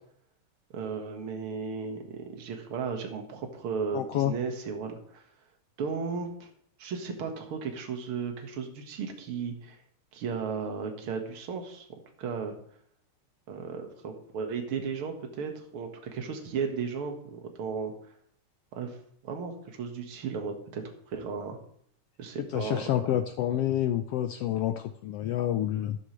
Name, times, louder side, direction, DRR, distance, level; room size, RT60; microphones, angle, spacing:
voice 1, 0.7-5.2 5.8-6.5 6.8-9.8 10.1-11.9 12.2-12.6 13.5-17.9 18.7-19.0 19.2-20.8 21.1-21.6 22.2-22.8, right 5 dB, 50° right, 3 dB, 2.3 m, -35 dB
voice 2, 3.9-4.3 22.4-26.0, left 12 dB, 85° left, 8 dB, 1.3 m, -28 dB
13.0 x 11.5 x 3.2 m, 0.63 s
omnidirectional pair, 3.3 m